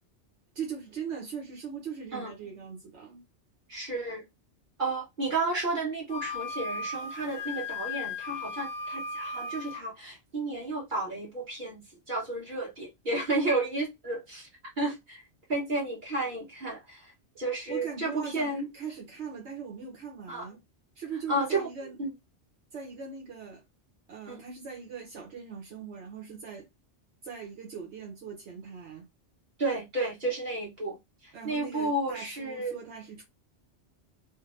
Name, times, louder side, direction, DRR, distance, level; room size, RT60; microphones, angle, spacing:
voice 1, 0.5-3.2 17.7-20.6 21.0-22.0 22.7-23.6 24.1-26.7 27.2-29.1 31.3-33.2, right 6 dB, 75° right, 1.1 m, -40 dB
voice 2, 3.7-4.2 4.8-11.8 12.1-14.5 14.8-15.2 15.5-17.1 17.4-18.7 20.3-20.5 21.3-21.7 22.0-22.1 24.3-24.4 29.6-31.0 31.2-32.8, right 2 dB, 45° right, 1.5 m, -32 dB
Wind instrument woodwind instrument, 6.1-9.8, left 3 dB, 55° left, 0.6 m, -36 dB
3.3 x 2.1 x 3.1 m
omnidirectional pair, 1.2 m